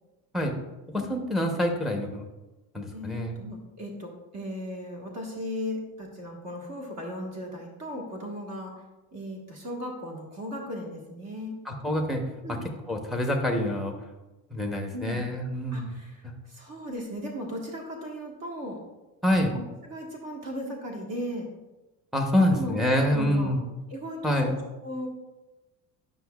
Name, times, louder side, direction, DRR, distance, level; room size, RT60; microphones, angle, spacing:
voice 1, 0.9-2.3 2.7-3.4 11.7-12.2 12.5-12.6 12.9-13.9 14.5-15.9 19.2-19.5 22.1-23.6 24.2-24.5, left 1 dB, ahead, 2 dB, 0.8 m, -26 dB
voice 2, 2.9-8.7 9.1-11.6 12.4-12.6 14.9-15.3 15.7-18.8 19.5-21.5 22.5-23.5 23.9-25.1, equal, 40° right, 0 dB, 1.4 m, -37 dB
9.9 x 5.7 x 2.3 m, 1.1 s
cardioid pair, 145°, 40 cm